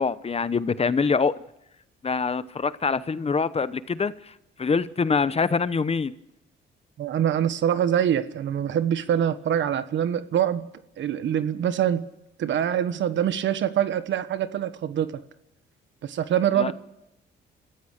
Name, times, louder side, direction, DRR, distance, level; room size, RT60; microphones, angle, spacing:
voice 1, 0.0-1.3 2.0-6.1 16.6-16.7, left 5 dB, 30° left, 15 dB, 0.9 m, -25 dB
voice 2, 7.0-10.7 11.0-12.1 12.4-15.2 16.0-16.7, right 9 dB, 70° right, 12 dB, 1.3 m, -24 dB
27.0 x 15.0 x 6.6 m, 0.87 s
cardioid pair, 90°, 20 cm